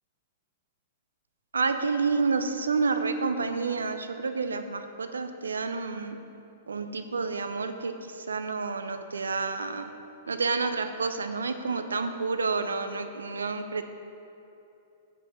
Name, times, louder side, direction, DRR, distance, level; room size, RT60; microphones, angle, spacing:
voice 1, 1.5-6.2 6.7-9.9 10.3-13.8, right 4 dB, 85° right, 8 dB, 0.6 m, -29 dB
7.6 x 5.6 x 7.4 m, 2.8 s
hypercardioid pair, 115°, 0 cm